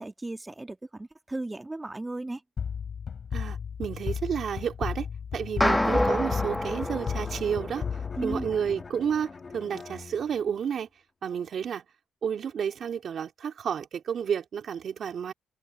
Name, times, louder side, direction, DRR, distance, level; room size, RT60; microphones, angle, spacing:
voice 1, 0.0-2.4 8.2-8.6, right 2 dB, 15° right, 1.7 m, -35 dB
sound 1, 2.6-9.2, left 7 dB, 50° left, 4.3 m, -35 dB
voice 2, 3.3-5.1 5.3-10.9 11.2-11.8 12.2-15.3, right 7 dB, 55° right, 3.0 m, -31 dB
sound 2, 5.6-8.1, left 1 dB, 5° left, 1.1 m, -27 dB
Bowed string instrument, 6.2-10.6, left 4 dB, 35° left, 2.2 m, -44 dB
cardioid pair, 90°, 0 cm